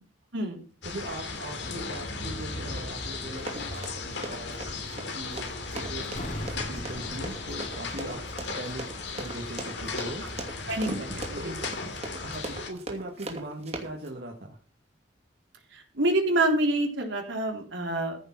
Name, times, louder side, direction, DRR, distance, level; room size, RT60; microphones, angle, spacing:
sound 1, 0.8-12.7, left 3 dB, 60° left, 2.9 m, -36 dB
voice 1, 0.8-8.8 9.1-10.2 11.3-11.7 12.2-14.6, right 1 dB, 55° right, 0 dB, 1.9 m, -40 dB
Run, 3.4-14.1, right 2 dB, 35° right, 2.7 m, -39 dB
sound 2, 6.1-9.0 9.3-9.4, equal, 40° left, 2.5 m, -40 dB
voice 2, 10.7-11.5 15.7-18.2, right 1 dB, 70° right, 2 dB, 3.7 m, -27 dB
15.0 x 6.7 x 6.0 m, 0.39 s
head